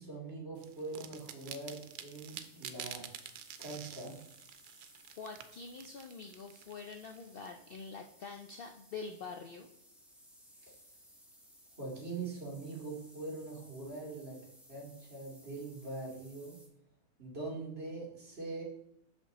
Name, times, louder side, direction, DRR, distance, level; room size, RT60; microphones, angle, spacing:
voice 1, 0.0-3.1 3.6-4.2 10.7-10.8 11.8-14.4 14.7-16.6 17.2-18.6, right 3 dB, 40° right, -3 dB, 2.2 m, -42 dB
sound 1, 0.6-7.5, right 10 dB, 90° right, 1.2 m, -49 dB
sound 2, 1.1-16.7, equal, ahead, 1.1 m, -61 dB
voice 2, 5.2-9.7, left 4 dB, 80° left, 5 dB, 0.5 m, -45 dB
6.7 x 5.3 x 4.1 m, 0.77 s
omnidirectional pair, 1.7 m